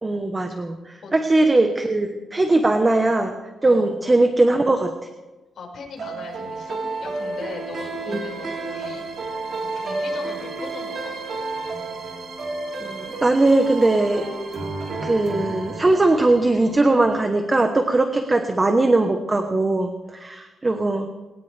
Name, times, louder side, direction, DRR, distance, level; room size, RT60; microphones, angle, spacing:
voice 1, 0.0-3.4 3.6-4.9 8.1-8.2 12.8-14.3 15.0-21.1, right 2 dB, 20° right, 6 dB, 1.1 m, -20 dB
voice 2, 5.6-9.0 9.6-11.2, left 4 dB, 55° left, -1 dB, 5.6 m, -38 dB
sound 1, 6.0-17.2, right 3 dB, 45° right, 4.1 m, -31 dB
21.5 x 18.5 x 3.4 m, 1.2 s
cardioid pair, 140°, 0 cm